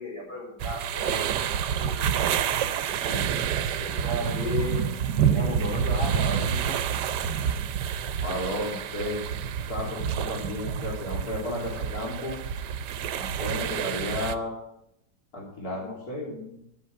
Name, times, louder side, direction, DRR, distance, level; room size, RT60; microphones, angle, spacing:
voice 1, 0.0-1.4 1.7-2.2 3.6-4.8 5.3-6.8, left 1 dB, 80° left, -3 dB, 5.6 m, -34 dB
sound 1, 0.6-14.3, right 8 dB, 90° right, 1.3 m, -28 dB
voice 2, 8.2-9.2 9.7-12.4 13.2-14.5 15.3-16.6, left 1 dB, 60° left, -4 dB, 3.7 m, -33 dB
12.0 x 8.6 x 7.6 m, 0.76 s
omnidirectional pair, 1.8 m